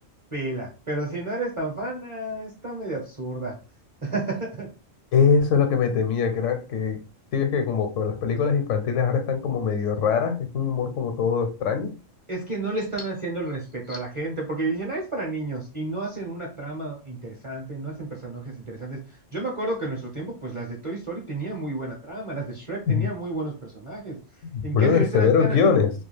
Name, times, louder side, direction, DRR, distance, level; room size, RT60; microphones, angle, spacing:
voice 1, 0.3-3.5 4.0-4.7 12.3-19.0 19.3-24.2 24.6-25.8, right 2 dB, 30° right, 0.6 m, -31 dB
voice 2, 5.1-7.0 7.3-11.9 22.9-23.1 24.4-25.9, left 6 dB, 75° left, 0.9 m, -22 dB
2.3 x 2.3 x 3.2 m
omnidirectional pair, 1.3 m